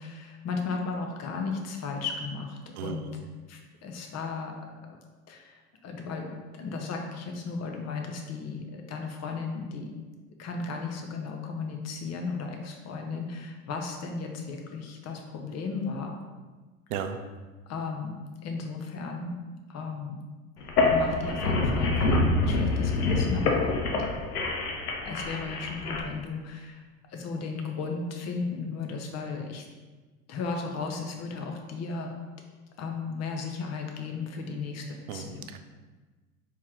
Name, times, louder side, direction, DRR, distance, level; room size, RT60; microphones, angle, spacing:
voice 1, 0.0-3.1 3.5-4.5 4.9-5.0 5.3-9.9 10.4-16.1 17.7-19.3 19.7-20.2 20.9-24.1 25.0-26.8 27.1-29.7 30.3-32.1 32.8-34.8 35.1-35.5, left 4 dB, 35° left, 2 dB, 0.8 m, -35 dB
sound 1, 20.6-26.0, left 2 dB, 90° left, 0.7 m, -26 dB
voice 2, 35.1-35.6, right 8 dB, 75° right, 8 dB, 0.6 m, -34 dB
4.5 x 3.0 x 3.6 m, 1.3 s
hypercardioid pair, 80°, 45 cm